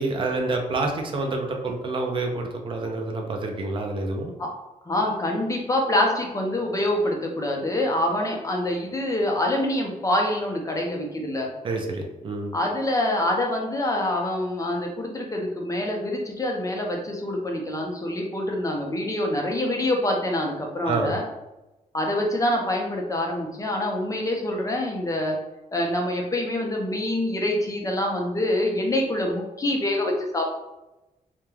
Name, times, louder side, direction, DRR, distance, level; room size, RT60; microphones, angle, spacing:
voice 1, 0.0-4.3 11.6-12.5 20.9-21.1, right 3 dB, 35° right, 2 dB, 0.4 m, -28 dB
voice 2, 4.9-11.5 12.5-21.2 21.9-25.4 25.7-30.4, left 1 dB, 25° left, 0 dB, 0.5 m, -25 dB
2.3 x 2.1 x 3.1 m, 0.98 s
cardioid pair, 115°, 14 cm